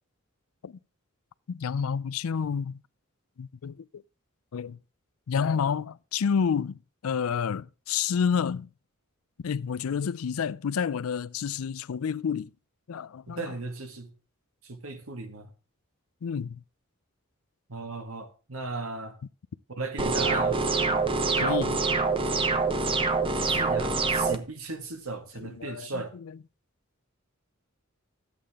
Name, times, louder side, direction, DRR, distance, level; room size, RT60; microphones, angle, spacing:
voice 1, 1.5-2.8 3.4-4.0 4.5-4.8 5.3-8.7 9.4-12.5 12.9-13.5 16.2-16.6 21.4-21.8 25.4-26.4, left 6 dB, 80° left, 0.4 m, -29 dB
voice 2, 13.3-14.1 14.6-15.5 17.7-19.2 19.7-20.6 23.4-26.1, right 3 dB, 80° right, 1.7 m, -36 dB
sound 1, 20.0-24.4, right 4 dB, 25° right, 0.8 m, -25 dB
13.0 x 8.6 x 3.6 m
head